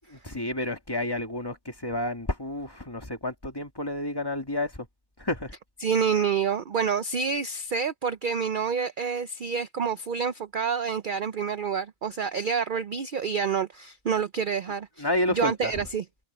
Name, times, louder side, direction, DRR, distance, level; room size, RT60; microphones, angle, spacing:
voice 1, 0.1-4.9 5.2-5.5 15.0-15.8, left 1 dB, 15° left, 1.8 m, -30 dB
voice 2, 5.8-15.0 15.3-16.0, right 6 dB, 50° right, 0.6 m, -28 dB
omnidirectional pair, 1.4 m